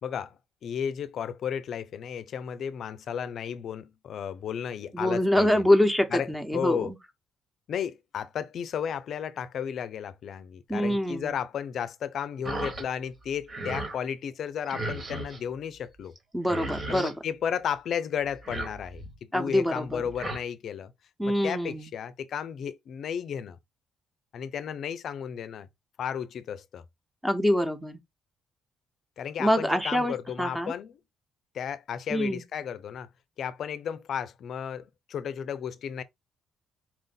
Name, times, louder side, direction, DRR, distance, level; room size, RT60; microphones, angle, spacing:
voice 1, 0.0-5.7 6.1-6.9 7.7-16.1 16.9-20.9 21.2-23.6 24.3-25.7 26.0-26.8 29.2-30.9 31.5-33.1 33.4-36.0, left 8 dB, 65° left, 0.5 m, -34 dB
voice 2, 4.9-7.0 10.7-11.3 16.3-17.1 19.3-20.0 21.2-21.9 27.2-28.0 29.4-30.7 32.1-32.4, left 1 dB, 5° right, 1.1 m, -25 dB
sound 1, 12.4-12.9 13.2-14.0 14.7-15.4 16.2-16.3 16.4-17.2 18.3-19.2 19.9-20.4, right 2 dB, 40° right, 1.6 m, -35 dB
4.4 x 2.6 x 3.8 m
cardioid pair, 90°, 0 cm